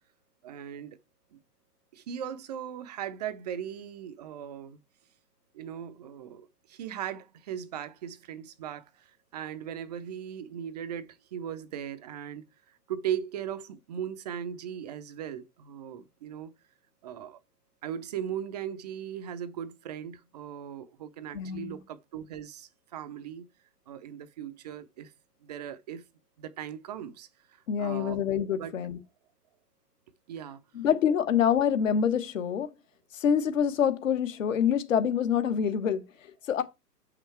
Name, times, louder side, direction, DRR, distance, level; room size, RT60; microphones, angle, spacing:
voice 1, 0.4-1.0 1.3-1.4 1.9-4.8 5.5-16.5 17.0-17.4 17.8-23.5 23.9-25.1 25.4-26.0 26.4-28.2 28.6-28.7 30.3-30.6, right 9 dB, 25° right, 0.6 m, -38 dB
voice 2, 21.3-21.8 27.7-29.0 30.7-32.7 33.1-36.6, left 8 dB, 50° left, 1.4 m, -26 dB
8.1 x 5.8 x 4.5 m
figure-of-eight pair, 125°, 49 cm